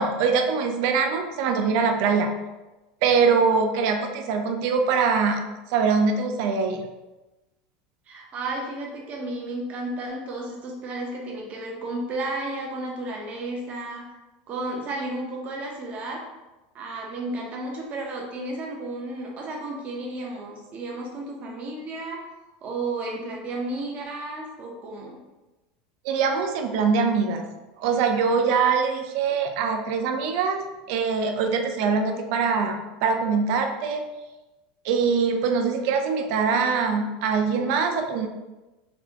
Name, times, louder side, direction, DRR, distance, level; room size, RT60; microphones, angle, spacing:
voice 1, 0.0-2.4 3.0-6.8 26.0-27.4 27.8-34.1 34.8-38.3, right 5 dB, 60° right, 5 dB, 0.5 m, -23 dB
voice 2, 8.1-14.1 14.5-16.2 16.7-22.2 22.6-25.2, right 2 dB, 35° right, 0 dB, 0.8 m, -33 dB
4.0 x 2.3 x 2.8 m, 1.1 s
supercardioid pair, 145°, 4 cm